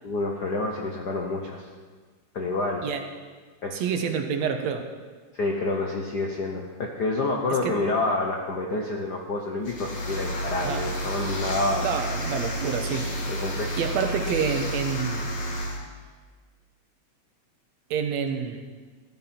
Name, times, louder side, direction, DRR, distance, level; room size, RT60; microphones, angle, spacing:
voice 1, 0.0-1.7 2.3-2.9 3.6-3.8 5.3-11.9 13.3-13.8, left 2 dB, 65° left, 1 dB, 1.0 m, -28 dB
voice 2, 3.7-4.9 7.6-7.8 10.6-10.8 11.8-13.0 13.8-15.2 17.9-18.6, right 6 dB, 70° right, 6 dB, 2.1 m, -28 dB
sound 1, 9.6-15.8, equal, 45° left, 2.3 m, -30 dB
15.5 x 13.0 x 4.4 m, 1.5 s
omnidirectional pair, 3.3 m